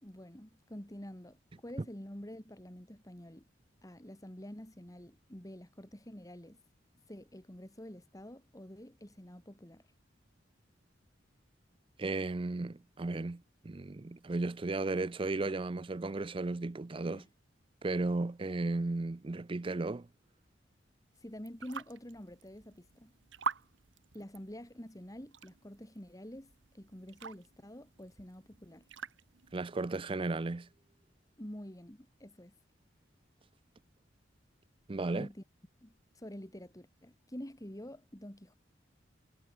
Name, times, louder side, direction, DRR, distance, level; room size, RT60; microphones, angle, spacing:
voice 1, 0.0-3.4 3.8-6.6 7.1-9.8 17.1-17.3 21.2-23.1 24.1-28.9 31.4-32.5 35.1-35.4 35.8-38.5, equal, 20° left, 2.5 m, -48 dB
voice 2, 12.0-17.2 17.8-20.1 29.5-30.7 34.9-35.3, right 3 dB, 30° right, 0.5 m, -35 dB
sound 1, 21.1-29.7, right 5 dB, 75° right, 1.1 m, -46 dB
head